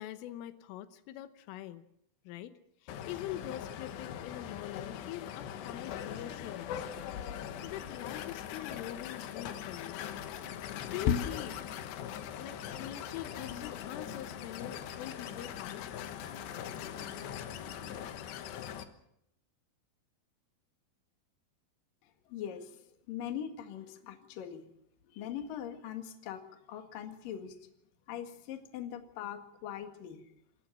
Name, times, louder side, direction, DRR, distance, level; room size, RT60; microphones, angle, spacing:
voice 1, 0.0-1.8 2.3-6.9 7.6-10.0 10.8-11.6 12.4-15.9, left 13 dB, 90° left, 11 dB, 3.7 m, -44 dB
sound 1, 2.9-18.8, left 9 dB, 70° left, 3.1 m, -40 dB
sound 2, 10.4-11.0 11.4-11.9 12.4-14.9 15.3-15.8 16.2-18.2, right 2 dB, 45° right, 6.0 m, -56 dB
voice 2, 22.0-24.7 25.1-27.7 28.1-30.2, left 9 dB, 55° left, 6 dB, 2.9 m, -42 dB
28.0 x 14.0 x 7.5 m, 0.77 s
omnidirectional pair, 5.7 m